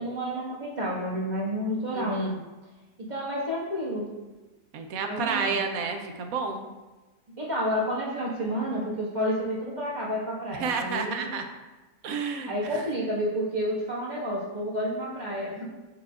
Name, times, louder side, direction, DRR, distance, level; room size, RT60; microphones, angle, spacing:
voice 1, 0.0-2.3 3.0-4.1 5.1-5.6 7.4-11.3 12.5-15.7, equal, 30° right, -6 dB, 1.6 m, -30 dB
voice 2, 1.9-2.4 4.7-6.7 10.6-11.4 12.0-12.8, right 5 dB, 80° right, 5 dB, 1.1 m, -30 dB
6.9 x 5.7 x 2.4 m, 1.2 s
omnidirectional pair, 1.5 m